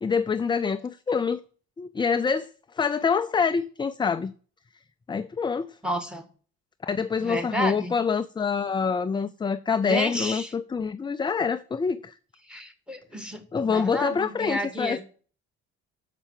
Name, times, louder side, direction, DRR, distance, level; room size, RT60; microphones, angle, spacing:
voice 1, 0.0-1.4 1.8-4.3 5.1-5.8 6.8-12.1 13.5-15.0, left 5 dB, 15° left, 0.3 m, -26 dB
voice 2, 5.8-6.2 7.2-7.9 9.9-10.5 12.5-15.0, equal, 5° right, 1.7 m, -31 dB
6.8 x 5.6 x 7.2 m
cardioid pair, 90°, 30 cm